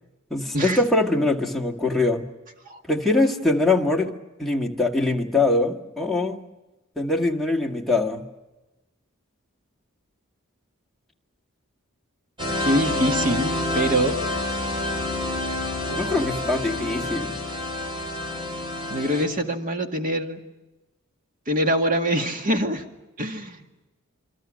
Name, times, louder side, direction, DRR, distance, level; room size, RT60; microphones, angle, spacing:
voice 1, 0.3-2.3 2.9-4.1 4.4-6.4 7.0-8.2 15.9-17.3, left 2 dB, ahead, 0 dB, 1.7 m, -23 dB
sound 1, 12.4-19.2, left 2 dB, 25° right, 7.9 m, -28 dB
voice 2, 12.6-14.2 15.9-16.3 18.9-20.4 21.5-22.8 23.2-23.6, equal, 40° right, 4 dB, 2.0 m, -24 dB
27.5 x 24.5 x 6.4 m, 1.0 s
head